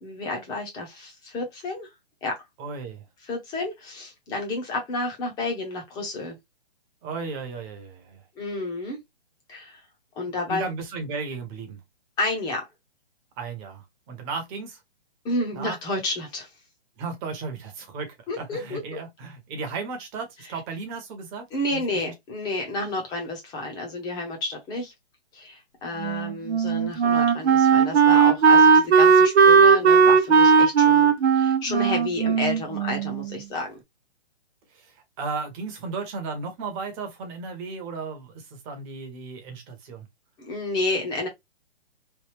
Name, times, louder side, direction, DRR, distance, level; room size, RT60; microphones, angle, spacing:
voice 1, 0.0-1.9 2.2-2.4 3.3-6.4 8.4-9.0 9.5-9.8 10.2-10.6 12.2-12.6 15.2-16.5 18.3-19.0 20.5-20.6 21.5-24.9 25.3-33.8 40.4-41.3, left 2 dB, 15° left, 0.8 m, -30 dB
voice 2, 2.6-3.0 7.0-8.2 10.5-11.8 13.4-14.8 15.5-15.8 17.0-21.4 21.7-21.8 34.7-40.1, right 4 dB, 20° right, 0.9 m, -35 dB
Wind instrument woodwind instrument, 26.0-33.3, right 6 dB, 80° right, 0.7 m, -17 dB
3.3 x 2.3 x 3.2 m
hypercardioid pair, 150°, 32 cm